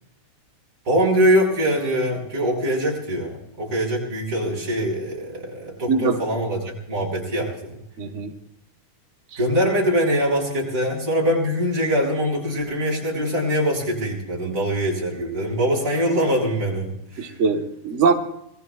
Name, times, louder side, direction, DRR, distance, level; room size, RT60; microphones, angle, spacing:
voice 1, 0.9-7.8 9.4-17.3, equal, 35° right, -3 dB, 6.8 m, -23 dB
voice 2, 8.0-8.3 17.2-18.1, right 5 dB, 75° right, 3 dB, 0.6 m, -21 dB
26.5 x 22.0 x 2.4 m, 0.75 s
omnidirectional pair, 3.6 m